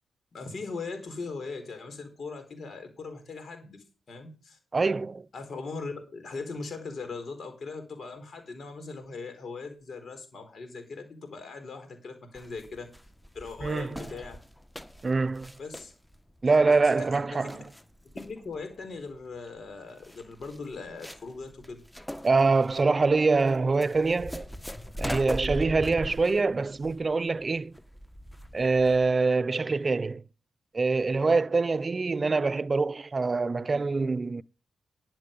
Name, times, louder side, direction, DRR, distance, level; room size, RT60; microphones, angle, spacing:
voice 1, 0.3-4.6 5.3-12.9 13.3-14.4 15.6-15.9 16.5-17.6 18.1-21.8, left 4 dB, 60° left, 4.2 m, -40 dB
voice 2, 4.7-5.2 13.6-14.0 15.0-15.5 16.4-17.6 22.2-24.5 25.0-27.7 28.5-30.2 30.7-34.4, right 3 dB, 40° right, 0.5 m, -24 dB
sound 1, 12.3-29.1, equal, 5° left, 1.2 m, -40 dB
11.0 x 7.5 x 5.3 m
supercardioid pair, 50°, 0 cm